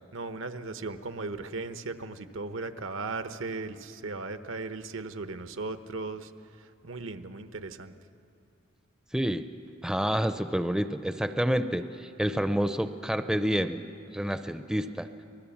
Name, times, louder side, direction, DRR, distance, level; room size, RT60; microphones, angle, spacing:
voice 1, 0.1-6.3 6.6-7.9, right 3 dB, 75° right, 9 dB, 1.0 m, -37 dB
voice 2, 9.1-9.5 9.8-15.1, equal, 5° right, 9 dB, 0.5 m, -28 dB
25.0 x 20.0 x 7.2 m, 2.5 s
head